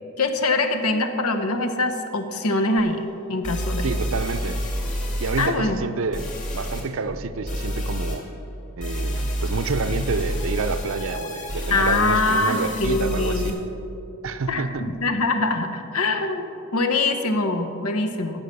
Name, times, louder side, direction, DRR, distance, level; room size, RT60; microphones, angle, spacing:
voice 1, 0.2-3.9 5.4-5.8 11.7-13.6 14.5-18.4, left 2 dB, 85° left, 6 dB, 1.0 m, -23 dB
sound 1, 2.8-2.9 3.4-5.5 6.1-6.8 7.5-8.2 8.8-13.5, equal, 35° left, 2.2 m, -28 dB
voice 2, 3.8-4.6 5.2-6.3 6.5-8.3 8.8-13.5 14.2-14.9, right 4 dB, 65° right, 11 dB, 0.6 m, -28 dB
15.5 x 5.7 x 6.7 m, 2.9 s
head